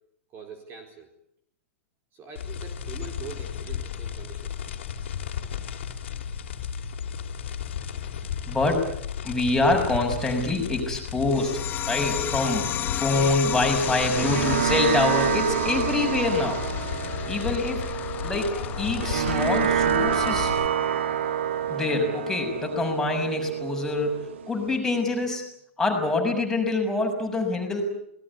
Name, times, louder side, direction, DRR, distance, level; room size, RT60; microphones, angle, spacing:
voice 1, 0.3-1.1 2.1-4.6 6.6-6.7, right 6 dB, 30° right, 4 dB, 4.5 m, -43 dB
sound 1, 2.4-20.7, left 8 dB, 60° left, 3.0 m, -34 dB
voice 2, 8.5-8.9 9.2-12.7 12.9-16.6 17.3-17.8 18.2-18.5 18.8-20.5 21.7-25.4 25.8-27.8, left 2 dB, 5° left, 1 dB, 6.5 m, -25 dB
sound 2, 11.3-22.3, left 11 dB, 25° left, 0.9 m, -34 dB
sound 3, 13.8-24.8, right 9 dB, 65° right, 1.7 m, -28 dB
27.5 x 19.5 x 8.5 m, 0.75 s
figure-of-eight pair, 100°, 7 cm